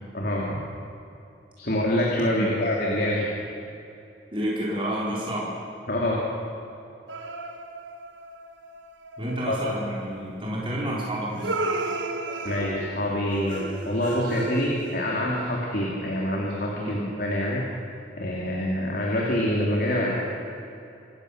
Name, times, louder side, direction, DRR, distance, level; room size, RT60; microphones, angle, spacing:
voice 1, 0.1-0.6 1.6-3.3 5.9-6.2 9.4-9.6 12.4-17.6 18.2-20.1, left 1 dB, 55° left, -3 dB, 3.0 m, -26 dB
voice 2, 4.3-5.5 9.2-11.5 16.8-17.0, right 1 dB, 30° right, -5 dB, 4.2 m, -29 dB
sound 1, 7.1-9.8 11.4-15.2, right 2 dB, 85° right, 1.8 m, -33 dB
26.5 x 15.0 x 6.7 m, 2.7 s
head